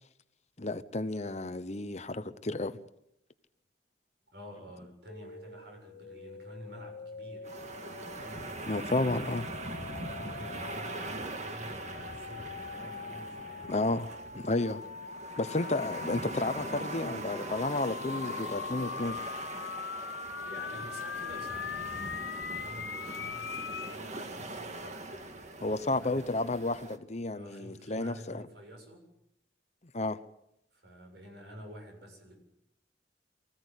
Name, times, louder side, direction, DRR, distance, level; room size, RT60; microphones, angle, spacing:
voice 1, 0.6-2.8 8.7-9.4 13.7-14.1 14.3-14.8 15.4-19.2 25.6-28.4 29.9-30.2, left 2 dB, 40° left, 12 dB, 0.9 m, -32 dB
voice 2, 4.3-9.1 9.9-13.7 20.4-26.4 27.3-29.1 30.7-32.4, equal, 65° right, 3 dB, 7.5 m, -50 dB
sound 1, 5.1-24.0, left 5 dB, 70° left, 1.0 m, -42 dB
sound 2, 7.4-27.0, right 2 dB, 40° right, 1.8 m, -42 dB
24.5 x 16.0 x 8.3 m, 0.80 s
head